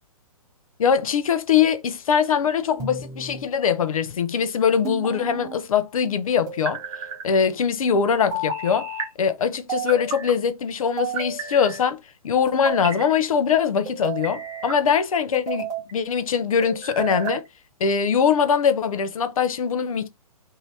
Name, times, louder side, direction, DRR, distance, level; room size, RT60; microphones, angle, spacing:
voice 1, 0.8-6.8 7.2-8.9 9.2-12.0 12.2-17.4 17.8-20.1, left 7 dB, 65° left, 0.6 m, -22 dB
sound 1, 2.8-3.5 4.8-5.6 6.5-7.2 8.3-9.1 9.7-10.3 11.0-11.8 12.5-13.1 13.8-14.8 15.3-15.9 16.6-17.4, right 4 dB, 20° right, 0.8 m, -31 dB
2.8 x 2.6 x 3.3 m
hypercardioid pair, 125°, 19 cm